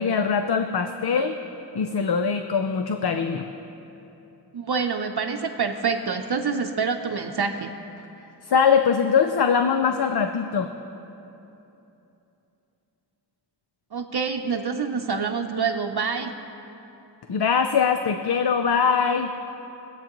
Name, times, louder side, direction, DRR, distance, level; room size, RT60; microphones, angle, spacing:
voice 1, 0.0-1.4 1.7-3.5 8.4-10.7 17.3-19.3, left 6 dB, 65° left, 7 dB, 0.6 m, -22 dB
voice 2, 4.5-7.7 13.9-16.3, right 5 dB, 60° right, 4 dB, 0.7 m, -26 dB
24.0 x 8.3 x 3.0 m, 3.0 s
wide cardioid pair, 50°, 43 cm